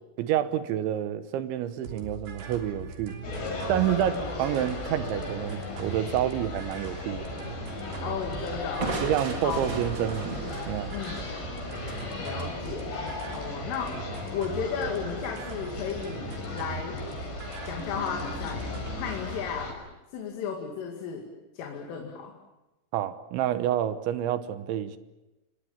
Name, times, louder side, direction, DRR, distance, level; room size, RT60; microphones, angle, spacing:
voice 1, 0.2-3.2 3.7-7.3 9.0-10.3 10.7-10.9 22.9-25.0, right 11 dB, 75° right, 3.1 m, -28 dB
sound 1, 1.8-19.2, right 4 dB, 55° right, 5.0 m, -41 dB
sound 2, 3.2-19.7, left 3 dB, 55° left, 8.2 m, -37 dB
voice 2, 8.0-9.0 9.4-9.7 10.9-11.2 12.2-12.9 13.3-14.0 14.3-17.0 17.6-18.7 19.0-19.8 20.1-22.4, left 7 dB, 75° left, 4.7 m, -34 dB
Crushing, 8.8-12.6, right 3 dB, 35° right, 2.0 m, -36 dB
28.5 x 22.5 x 7.2 m
omnidirectional pair, 6.0 m